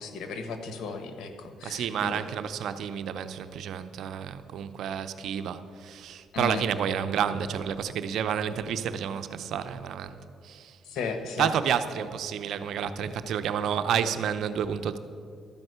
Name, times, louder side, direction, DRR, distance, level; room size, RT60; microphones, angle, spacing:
voice 1, 0.0-2.2 6.3-6.6 10.9-11.5, left 4 dB, 75° left, 7 dB, 1.2 m, -35 dB
voice 2, 1.6-10.2 10.4-10.8 11.4-15.0, right 8 dB, 75° right, 11 dB, 0.6 m, -30 dB
12.5 x 5.4 x 7.9 m, 2.4 s
cardioid pair, 90°, 0 cm